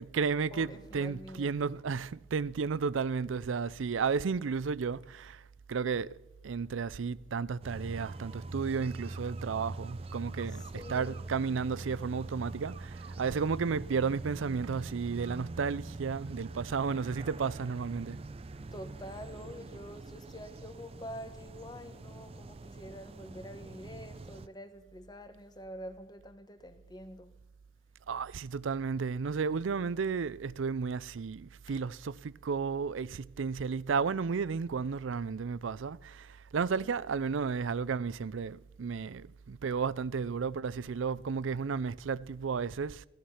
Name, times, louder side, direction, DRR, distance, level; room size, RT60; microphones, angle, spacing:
voice 1, 0.0-5.4 5.7-6.1 6.4-18.2 28.1-43.0, right 5 dB, 90° right, 0.5 m, -33 dB
voice 2, 0.5-1.5 10.5-11.3 18.7-27.4 36.7-37.0, equal, 20° left, 1.1 m, -47 dB
sound 1, 7.6-24.5, right 2 dB, 30° right, 0.4 m, -44 dB
16.5 x 13.0 x 5.7 m
head